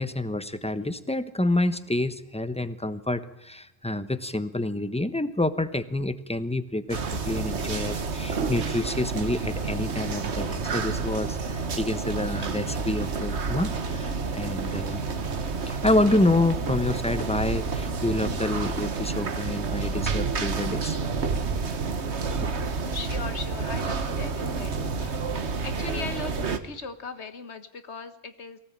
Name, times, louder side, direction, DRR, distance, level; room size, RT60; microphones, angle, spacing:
voice 1, 0.0-7.0 7.3-15.0 15.6-21.0 22.4-22.5, left 1 dB, 5° left, 12 dB, 1.0 m, -28 dB
sound 1, 6.9-26.6, right 4 dB, 80° right, 1.7 m, -29 dB
voice 2, 22.9-24.7 25.0-25.1 25.6-28.6, left 4 dB, 80° left, 10 dB, 1.8 m, -38 dB
23.5 x 17.0 x 8.8 m, 0.92 s
omnidirectional pair, 1.1 m